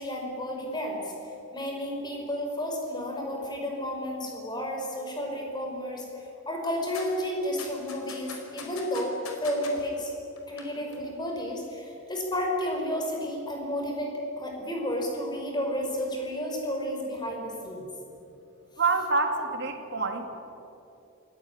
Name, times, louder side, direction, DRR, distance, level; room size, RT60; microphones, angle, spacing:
voice 1, 0.0-9.2 9.4-10.1 10.5-17.9, equal, 20° left, 0 dB, 5.7 m, -32 dB
sound 1, 6.9-7.1 7.6-9.7 10.4-10.6 10.9-11.0, left 5 dB, 90° left, 4.5 m, -41 dB
voice 2, 18.8-20.3, right 3 dB, 55° right, 5 dB, 2.7 m, -26 dB
27.0 x 17.5 x 10.0 m, 2.8 s
head